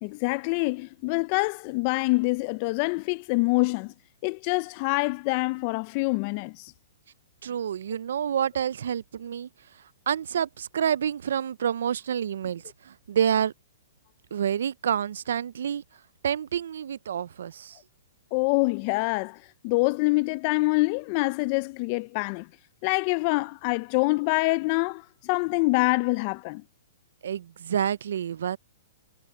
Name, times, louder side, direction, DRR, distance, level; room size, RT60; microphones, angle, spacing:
voice 1, 0.0-3.9 4.2-6.7 18.3-19.4 19.6-22.5 22.8-26.6, left 26 dB, 35° left, 0.3 m, -25 dB
voice 2, 7.4-9.5 10.1-13.5 14.3-15.8 16.2-17.8 27.2-28.6, right 8 dB, 75° right, 0.4 m, -28 dB
hypercardioid pair, 150°, 0 cm